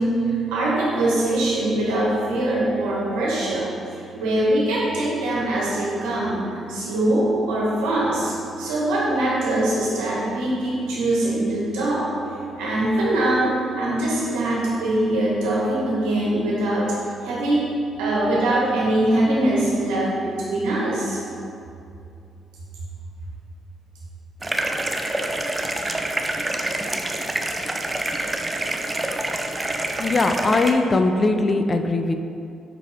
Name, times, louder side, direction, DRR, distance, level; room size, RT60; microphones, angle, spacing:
voice 1, 0.0-12.1 12.5-17.6 18.0-21.2, right 1 dB, 85° right, -5 dB, 1.4 m, -22 dB
sound 1, 24.4-30.7, right 1 dB, 20° right, 0.6 m, -26 dB
voice 2, 30.0-32.1, left 3 dB, 40° left, 6 dB, 0.5 m, -20 dB
6.1 x 4.5 x 3.5 m, 2.5 s
hypercardioid pair, 50°, 0 cm